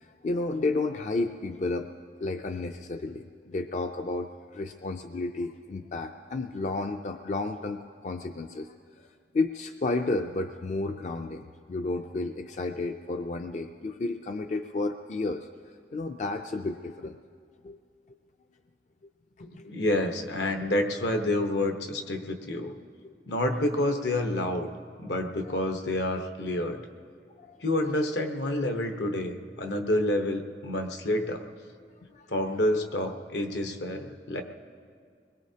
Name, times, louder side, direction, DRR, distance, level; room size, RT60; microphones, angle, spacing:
voice 1, 0.0-1.9 2.2-9.1 9.3-15.5 15.9-17.2 17.6-17.8 19.4-19.7 23.0-23.1 25.5-25.6 27.4-27.6 32.1-32.3, left 3 dB, 40° left, 6 dB, 0.4 m, -32 dB
voice 2, 19.4-22.7 23.3-24.7 25.0-26.8 27.6-31.4 32.3-34.4, left 1 dB, 75° left, 5 dB, 1.1 m, -28 dB
22.5 x 21.0 x 2.8 m, 2.1 s
head